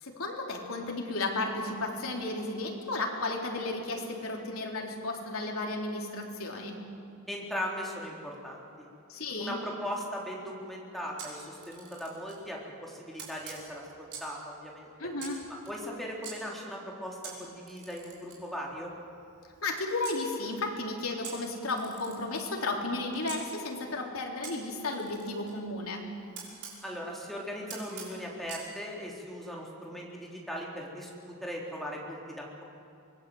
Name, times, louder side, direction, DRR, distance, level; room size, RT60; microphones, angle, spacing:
voice 1, 0.0-6.8 9.1-9.6 15.0-15.4 19.6-26.0, left 2 dB, 85° left, 0 dB, 3.7 m, -33 dB
voice 2, 7.3-8.7 9.4-14.9 15.6-18.9 26.8-32.6, equal, ahead, -3 dB, 3.8 m, -39 dB
Camera, 11.2-12.4 13.2-14.4 15.2-16.3 17.2-20.2 21.2-23.4 24.4-26.8 27.7-28.7, right 6 dB, 55° right, 5.7 m, -46 dB
24.5 x 20.0 x 8.0 m, 2.7 s
head